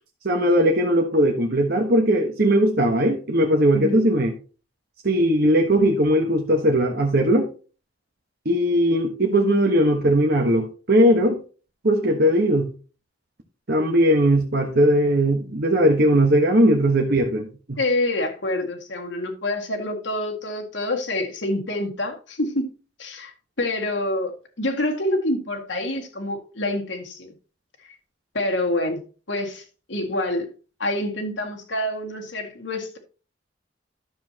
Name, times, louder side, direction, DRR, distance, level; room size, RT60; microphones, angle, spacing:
voice 1, 0.2-4.3 5.0-7.5 8.4-11.4 11.8-12.7 13.7-17.8, equal, 55° right, 1.2 m, -19 dB
voice 2, 3.7-4.0 17.8-22.7 23.0-27.3 28.3-29.0 29.3-30.5 30.8-33.0, left 1 dB, 75° left, 2.0 m, -27 dB
12.0 x 7.2 x 2.9 m
head